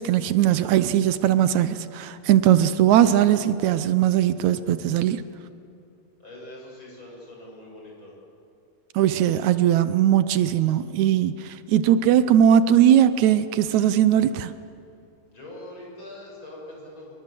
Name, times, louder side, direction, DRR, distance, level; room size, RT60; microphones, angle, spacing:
voice 1, 0.0-5.2 9.0-14.5, right 10 dB, 80° right, 13 dB, 2.1 m, -19 dB
voice 2, 6.2-8.1 15.3-17.1, left 1 dB, 40° left, -3 dB, 8.0 m, -42 dB
26.5 x 22.5 x 7.7 m, 2.5 s
omnidirectional pair, 3.3 m